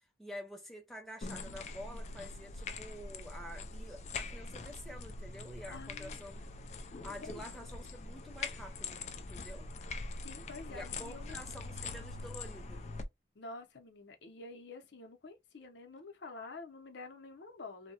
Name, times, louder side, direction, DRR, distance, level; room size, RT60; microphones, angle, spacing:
voice 1, 0.2-6.4 7.0-9.7 10.7-12.8, equal, ahead, 0.7 m, -48 dB
sound 1, 1.2-13.0, left 3 dB, 40° left, 0.3 m, -43 dB
voice 2, 5.7-6.2 7.2-7.5 10.2-11.4 13.3-17.9, left 3 dB, 85° left, 0.7 m, -48 dB
2.7 x 2.2 x 2.7 m
head